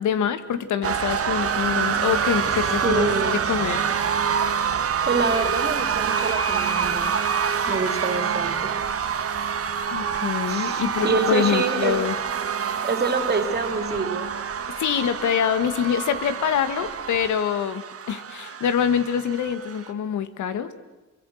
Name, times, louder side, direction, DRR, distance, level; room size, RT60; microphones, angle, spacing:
voice 1, 0.0-3.9 9.9-12.2 14.8-20.7, left 8 dB, 75° left, 11 dB, 1.8 m, -25 dB
sound 1, 0.8-19.9, right 7 dB, 50° right, 1.9 m, -26 dB
voice 2, 2.8-3.3 5.1-7.2 7.7-8.7 10.5-12.0 12.8-14.3, right 4 dB, 35° right, 6 dB, 3.5 m, -26 dB
28.5 x 23.0 x 6.5 m, 1.2 s
cardioid pair, 90°, 30 cm